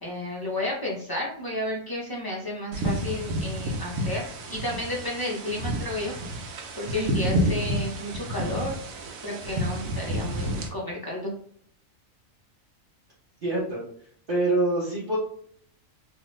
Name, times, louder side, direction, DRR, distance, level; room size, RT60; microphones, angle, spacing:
voice 1, 0.0-4.2 4.5-6.1 6.7-8.8 9.2-11.3, left 1 dB, 30° left, -3 dB, 0.4 m, -32 dB
sound 1, 2.7-10.7, equal, 90° right, 1.0 m, -30 dB
voice 2, 13.4-13.8 14.3-15.2, right 2 dB, 45° right, -6 dB, 1.0 m, -26 dB
2.7 x 2.4 x 3.0 m, 0.62 s
omnidirectional pair, 1.4 m